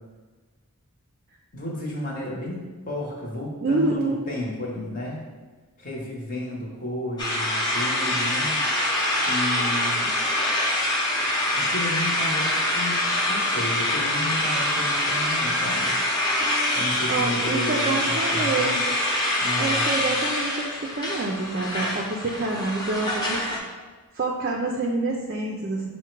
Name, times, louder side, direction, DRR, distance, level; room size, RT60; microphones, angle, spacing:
voice 1, 1.5-5.2 5.8-8.6 9.2-10.1 11.5-16.0 16.7-18.7 19.4-20.0, left 1 dB, 35° left, -3 dB, 0.9 m, -32 dB
voice 2, 3.6-4.3 16.4-18.8 19.6-23.5 24.1-25.9, right 2 dB, 40° right, 0 dB, 0.3 m, -27 dB
sound 1, 7.2-23.6, left 1 dB, 20° left, 0.6 m, -25 dB
5.6 x 2.1 x 4.5 m, 1.3 s
head